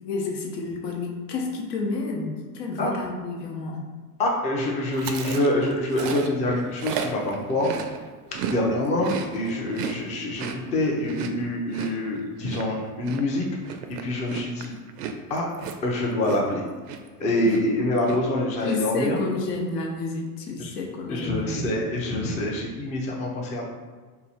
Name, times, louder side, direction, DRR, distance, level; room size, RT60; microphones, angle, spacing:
voice 1, 0.0-3.8 17.4-17.9 18.6-21.8, left 3 dB, 80° left, 1 dB, 0.8 m, -30 dB
voice 2, 4.2-7.7 8.5-10.4 10.7-13.5 14.0-14.7 15.3-15.5 15.8-16.6 17.2-19.2 20.6-20.7 21.1-23.7, left 1 dB, 15° left, -2 dB, 0.4 m, -25 dB
Chewing mastication, 4.9-8.6 8.9-16.6 16.9-17.2 17.5-18.2, right 6 dB, 70° right, 0.5 m, -35 dB
2.9 x 2.3 x 4.0 m, 1.4 s
hypercardioid pair, 100°, 48 cm